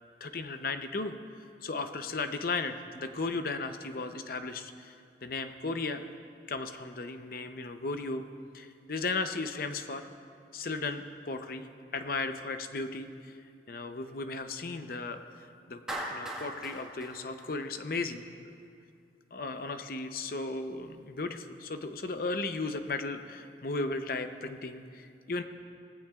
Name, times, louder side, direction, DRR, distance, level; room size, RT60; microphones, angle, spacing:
voice 1, 0.2-1.1 1.6-4.9 5.2-6.1 6.5-8.2 8.5-10.1 10.5-11.7 11.9-13.3 13.7-15.8 16.1-18.5 19.3-25.4, left 3 dB, 55° left, 8 dB, 0.7 m, -35 dB
Clapping, 15.9-18.2, right 1 dB, 5° right, 1.6 m, -39 dB
19.0 x 15.5 x 2.4 m, 2.4 s
head